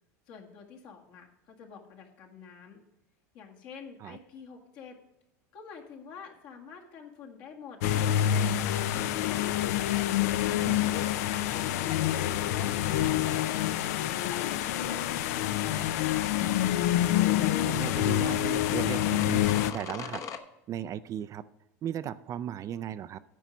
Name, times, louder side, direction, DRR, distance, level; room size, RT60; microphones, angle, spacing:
voice 1, 0.3-2.8 3.3-5.0 5.5-9.6 10.3-13.8 14.1-16.3, left 6 dB, 60° left, 1 dB, 1.8 m, -48 dB
sound 1, 7.8-19.7, left 12 dB, 75° left, 0.5 m, -27 dB
sound 2, 17.3-20.4, left 7 dB, 40° left, 0.9 m, -42 dB
voice 2, 17.7-20.2 20.7-21.4 21.8-23.2, right 10 dB, 40° right, 15 dB, 0.4 m, -36 dB
9.2 x 5.1 x 7.0 m, 0.91 s
supercardioid pair, 105°, 9 cm